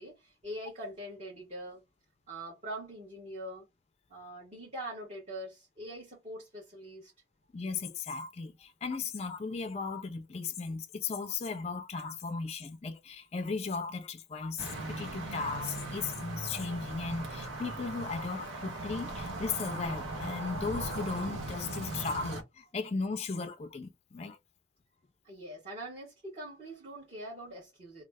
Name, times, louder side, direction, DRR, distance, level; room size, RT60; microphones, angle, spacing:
voice 1, 0.0-1.8 2.3-3.6 4.1-7.1 25.2-28.0, right 1 dB, 35° right, 1.3 m, -43 dB
voice 2, 7.5-24.4, left 4 dB, 30° left, 0.3 m, -36 dB
sound 1, 14.6-22.4, right 2 dB, 80° right, 1.0 m, -39 dB
3.1 x 2.0 x 3.3 m
head